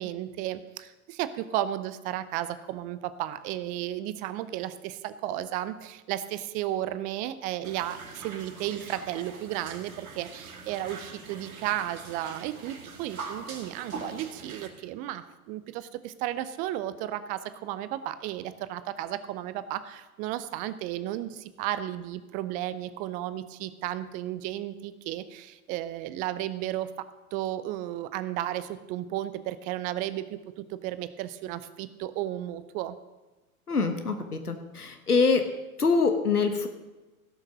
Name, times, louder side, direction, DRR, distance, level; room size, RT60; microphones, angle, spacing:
voice 1, 0.0-26.9 27.3-32.9, right 13 dB, 20° right, 14 dB, 0.4 m, -34 dB
sound 1, 7.6-14.7, right 4 dB, 70° right, 2.2 m, -43 dB
voice 2, 33.7-35.4 35.8-36.7, left 4 dB, 85° left, 7 dB, 1.3 m, -24 dB
16.5 x 6.5 x 6.0 m, 1.2 s
figure-of-eight pair, 100°, 44 cm